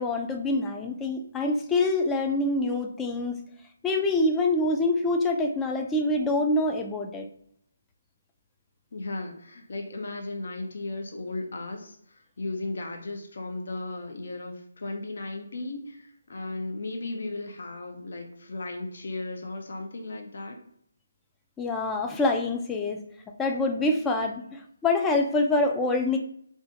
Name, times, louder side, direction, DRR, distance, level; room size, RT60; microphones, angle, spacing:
voice 1, 0.0-3.4 3.8-7.3 21.6-23.0 23.4-26.2, left 2 dB, 10° left, 4 dB, 0.3 m, -25 dB
voice 2, 8.9-20.6, left 2 dB, 60° left, 2 dB, 0.6 m, -36 dB
2.5 x 2.4 x 3.8 m, 0.69 s
figure-of-eight pair, 155°, 0 cm